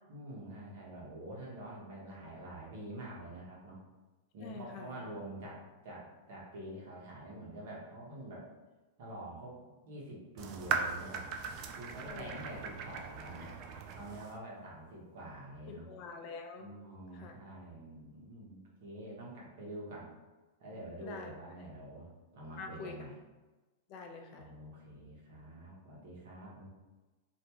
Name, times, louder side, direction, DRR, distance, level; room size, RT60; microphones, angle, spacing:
voice 1, 0.1-3.8 4.3-8.5 9.0-9.6 9.8-11.3 11.7-13.6 13.9-15.9 16.6-20.1 20.6-23.1 24.3-26.7, right 1 dB, 65° right, -4 dB, 1.0 m, -47 dB
voice 2, 4.4-5.0 12.0-12.3 15.7-16.7 17.2-17.3 21.0-21.3 22.6-22.9 23.9-24.5, left 5 dB, 45° left, 3 dB, 0.5 m, -46 dB
sound 1, 10.4-14.4, right 6 dB, 45° right, 0.3 m, -39 dB
2.5 x 2.2 x 2.9 m, 1.2 s
hypercardioid pair, 125°, 0 cm